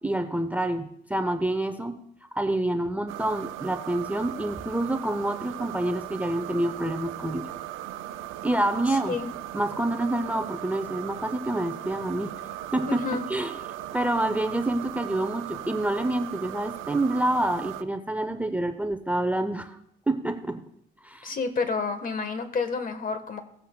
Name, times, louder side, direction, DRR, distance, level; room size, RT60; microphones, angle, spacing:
voice 1, 0.0-2.0 2.3-7.5 8.4-9.2 9.5-13.5 13.9-19.8 20.1-20.6 21.0-21.3, right 1 dB, 10° right, 9 dB, 0.6 m, -27 dB
sound 1, 3.1-17.8, right 13 dB, 80° right, 0.5 m, -38 dB
voice 2, 8.9-9.3 12.9-13.2 21.2-23.4, left 4 dB, 45° left, 9 dB, 1.2 m, -29 dB
17.5 x 8.1 x 2.2 m, 0.74 s
cardioid pair, 90°, 20 cm